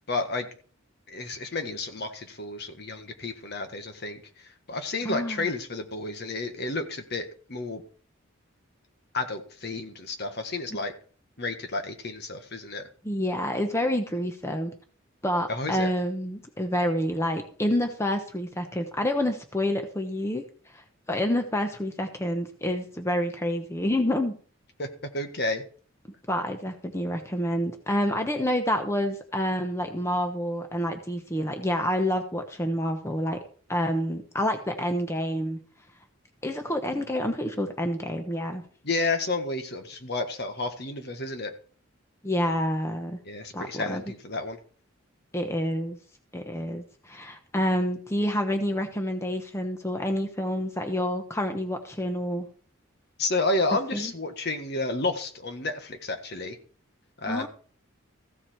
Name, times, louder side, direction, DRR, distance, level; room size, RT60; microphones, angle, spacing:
voice 1, 0.1-0.5 1.1-7.8 9.1-10.9 11.4-12.9 15.5-15.9 24.8-25.6 38.8-41.5 43.2-44.6 53.2-56.6 57.2-57.5, left 2 dB, 50° left, 6 dB, 1.5 m, -31 dB
voice 2, 5.0-5.4 13.0-14.7 15.2-20.4 20.7-24.3 26.3-33.4 33.7-35.6 36.4-38.6 42.2-43.2 43.5-44.0 45.3-46.0 46.3-52.5 53.9-54.1 57.3-57.5, equal, 15° left, 5 dB, 1.0 m, -28 dB
15.0 x 7.4 x 4.5 m, 0.41 s
head